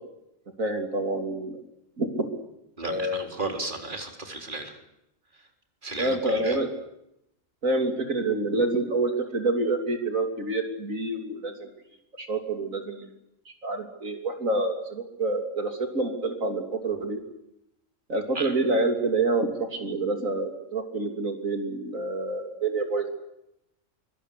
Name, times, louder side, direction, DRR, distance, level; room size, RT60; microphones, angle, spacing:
voice 1, 0.6-1.6 2.0-2.3 2.8-3.3 6.0-6.7 7.6-11.7 12.2-13.1 13.5-17.2 18.1-23.1, right 2 dB, 80° right, 5 dB, 3.5 m, -27 dB
voice 2, 2.8-4.8 5.3-5.5 5.8-6.6 18.3-18.5, right 2 dB, 40° right, 4 dB, 4.1 m, -34 dB
25.0 x 24.5 x 8.4 m, 0.83 s
omnidirectional pair, 1.4 m